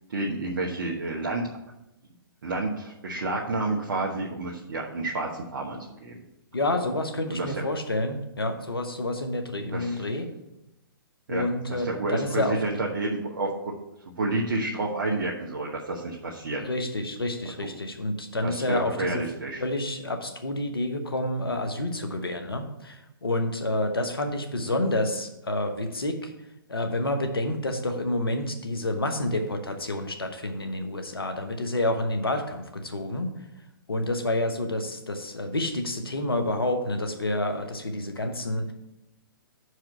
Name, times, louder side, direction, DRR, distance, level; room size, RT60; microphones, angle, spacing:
voice 1, 0.1-1.4 2.4-6.2 7.3-7.6 9.7-10.0 11.3-11.4 11.7-13.7 14.2-16.6 17.6-17.7 18.4-19.6, right 2 dB, 65° right, -2 dB, 1.1 m, -30 dB
voice 2, 6.5-10.2 11.3-12.6 16.6-19.2 19.6-26.3 26.7-33.3 33.9-38.7, left 1 dB, 90° left, 6 dB, 1.1 m, -29 dB
5.8 x 4.8 x 6.6 m, 0.91 s
figure-of-eight pair, 125°, 12 cm